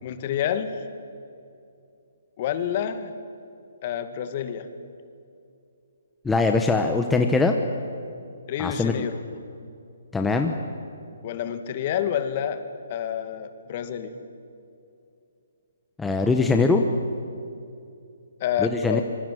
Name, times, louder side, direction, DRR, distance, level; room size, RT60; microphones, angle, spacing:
voice 1, 0.0-0.8 2.4-3.1 3.8-4.7 8.5-9.2 11.2-14.2 18.4-19.0, left 9 dB, 35° left, 10 dB, 2.0 m, -28 dB
voice 2, 6.2-7.5 8.6-8.9 10.1-10.5 16.0-16.8 18.6-19.0, left 3 dB, 5° left, 4 dB, 1.1 m, -21 dB
26.0 x 23.0 x 7.8 m, 2.5 s
hypercardioid pair, 160°, 0 cm